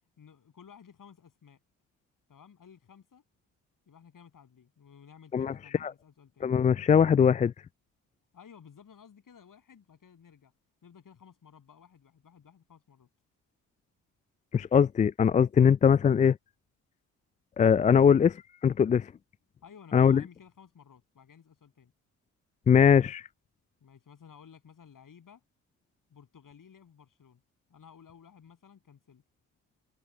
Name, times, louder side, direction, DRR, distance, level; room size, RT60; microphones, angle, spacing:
voice 1, 0.2-1.6 2.3-3.2 3.9-6.5 8.3-10.5 10.8-13.1 19.6-21.9 23.8-25.4 26.1-27.4 27.7-29.2, left 7 dB, 50° left, 7.7 m, -55 dB
voice 2, 6.4-7.5 14.5-16.4 17.6-19.1 19.9-20.2 22.7-23.2, left 7 dB, 20° left, 0.3 m, -21 dB
hypercardioid pair, 40°, 40 cm